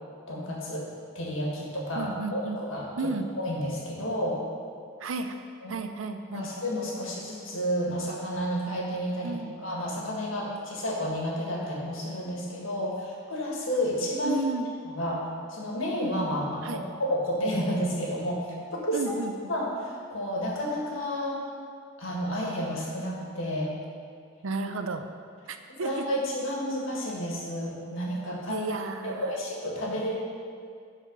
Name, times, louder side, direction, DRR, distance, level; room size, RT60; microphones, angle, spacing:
voice 1, 0.3-0.9 1.1-2.8 3.4-4.4 5.6-5.8 6.3-9.4 9.6-14.4 14.8-15.2 15.5-19.1 19.5-21.4 22.0-23.7 25.8-28.7 29.0-30.1, equal, 80° left, -2 dB, 1.8 m, -31 dB
voice 2, 2.0-2.6 3.0-3.3 5.0-5.3 5.7-6.5 9.2-9.5 14.2-14.7 16.6-16.8 18.9-19.3 24.4-25.1 25.5-26.0 28.5-29.3, right 3 dB, 85° right, 8 dB, 0.6 m, -32 dB
10.5 x 4.2 x 5.5 m, 2.2 s
head